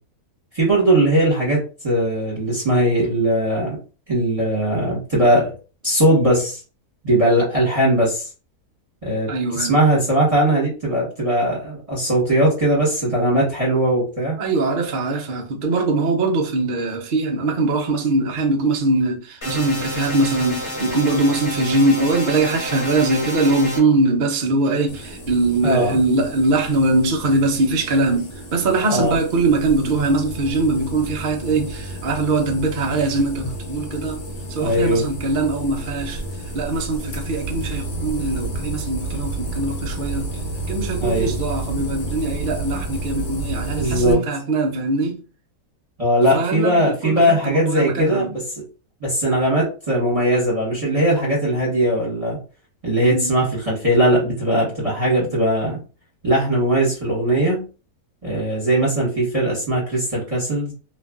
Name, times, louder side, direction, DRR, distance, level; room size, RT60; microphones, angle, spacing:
voice 1, 0.5-3.8 4.1-5.5 5.8-6.6 7.0-8.3 9.0-9.3 9.5-14.4 25.6-26.0 28.9-29.1 34.6-35.0 41.0-41.3 43.7-44.2 46.0-48.6 49.0-52.4 52.8-55.8 56.2-57.6 58.2-60.7, right 1 dB, 25° right, 1.0 m, -19 dB
voice 2, 9.3-9.7 14.4-34.2 34.5-40.4 40.7-45.2 46.3-48.3 53.1-53.3, right 2 dB, 65° right, 0.5 m, -21 dB
sound 1, 19.4-23.8, equal, 20° left, 1.0 m, -29 dB
sound 2, 24.9-44.1, right 2 dB, 85° left, 1.3 m, -31 dB
2.9 x 2.4 x 2.4 m
omnidirectional pair, 1.6 m